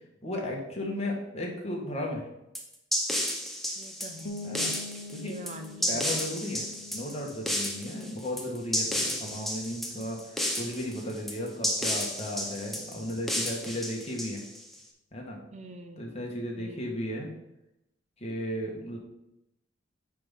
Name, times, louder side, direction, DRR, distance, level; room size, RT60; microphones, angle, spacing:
voice 1, 0.2-2.3 4.4-4.7 5.1-5.3 5.9-14.4 15.1-15.4 16.0-17.3 18.2-19.0, left 1 dB, 35° left, 0 dB, 1.7 m, -35 dB
sound 1, 2.5-14.7, equal, ahead, 1.0 m, -32 dB
voice 2, 3.8-4.5 5.2-6.1 7.9-8.3 15.5-16.1 16.6-17.1, right 1 dB, 35° right, 7 dB, 0.6 m, -45 dB
sound 2, 4.2-9.8, left 3 dB, 65° left, 0.7 m, -45 dB
9.2 x 3.7 x 5.8 m, 0.87 s
head